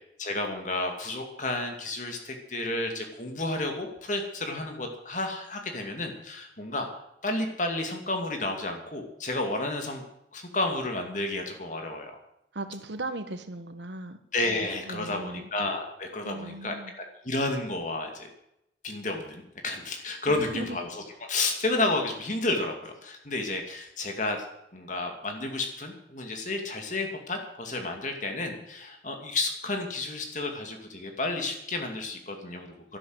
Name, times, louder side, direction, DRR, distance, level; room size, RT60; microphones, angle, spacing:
voice 1, 0.2-6.9 7.2-10.0 10.3-12.1 14.3-18.3 18.8-20.9 21.3-24.4 24.7-33.0, left 2 dB, 45° left, 3 dB, 2.5 m, -31 dB
voice 2, 12.5-14.2 14.6-15.5 16.2-16.9 20.3-20.8, right 2 dB, 85° right, 9 dB, 1.5 m, -38 dB
12.0 x 11.5 x 7.9 m, 0.81 s
head